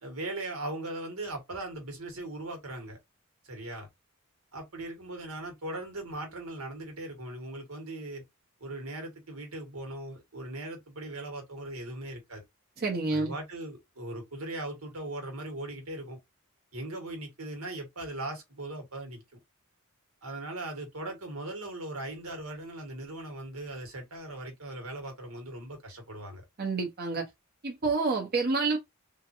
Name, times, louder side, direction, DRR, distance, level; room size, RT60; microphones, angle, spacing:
voice 1, 0.0-3.0 3.5-3.9 4.5-8.2 8.6-12.4 13.1-16.2 16.7-19.4 20.2-26.4, right 2 dB, 85° right, 1.6 m, -39 dB
voice 2, 12.8-13.3 26.6-27.3 27.6-28.8, right 3 dB, 45° right, 0.9 m, -28 dB
3.7 x 2.6 x 2.7 m
head